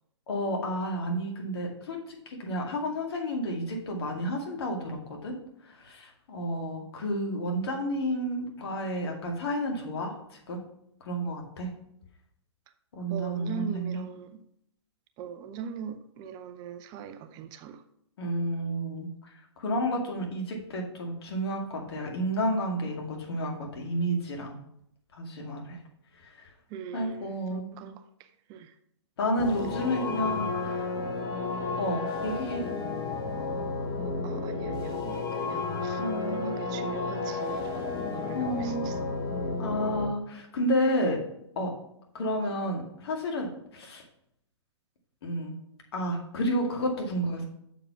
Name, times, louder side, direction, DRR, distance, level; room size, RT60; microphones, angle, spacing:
voice 1, 0.3-5.4 5.6-10.6 11.0-11.7 12.9-14.0 18.2-24.6 25.1-25.8 26.2-26.5 26.9-27.7 29.2-30.9 31.8-32.6 36.0-36.5 38.3-38.9 39.6-41.2 41.6-41.7 42.1-44.0 45.2-45.6 45.9-47.4, equal, 55° left, 1 dB, 2.2 m, -31 dB
voice 2, 13.1-14.4 15.2-17.8 26.7-28.8 34.0-39.1, right 7 dB, 25° right, 8 dB, 0.6 m, -41 dB
sound 1, 29.4-40.1, left 4 dB, 25° left, 1.3 m, -32 dB
7.2 x 4.8 x 5.7 m, 0.75 s
hypercardioid pair, 130°, 15 cm